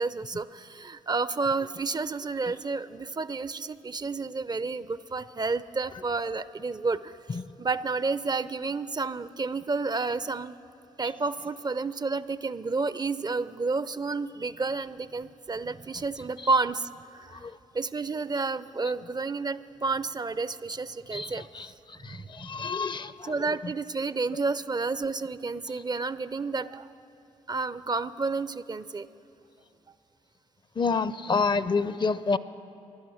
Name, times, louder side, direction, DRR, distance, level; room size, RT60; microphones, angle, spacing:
voice 1, 0.0-10.6 11.0-17.4 17.7-21.7 22.2-22.5 23.2-26.9 27.5-29.1, right 4 dB, 30° right, 16 dB, 0.5 m, -30 dB
voice 2, 21.1-21.7 22.0-23.3 30.8-32.4, left 4 dB, 35° left, 16 dB, 0.5 m, -28 dB
16.0 x 11.5 x 6.3 m, 2.6 s
hypercardioid pair, 45°, 14 cm